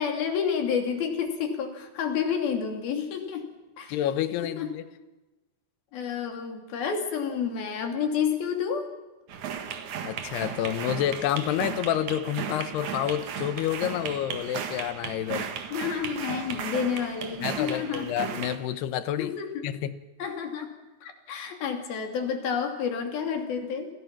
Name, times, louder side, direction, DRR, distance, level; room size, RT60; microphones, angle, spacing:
voice 1, 0.0-3.5 3.8-4.0 4.4-4.7 5.9-8.9 15.7-18.1 19.2-19.6 20.2-20.7 21.0-23.9, left 7 dB, 65° left, 5 dB, 4.5 m, -30 dB
voice 2, 3.9-4.8 10.0-15.5 17.4-19.4 19.6-20.0, left 11 dB, 80° left, 13 dB, 3.1 m, -29 dB
sound 1, 9.3-18.6, right 8 dB, 55° right, 2.6 m, -35 dB
30.0 x 22.0 x 6.0 m, 1.1 s
omnidirectional pair, 4.7 m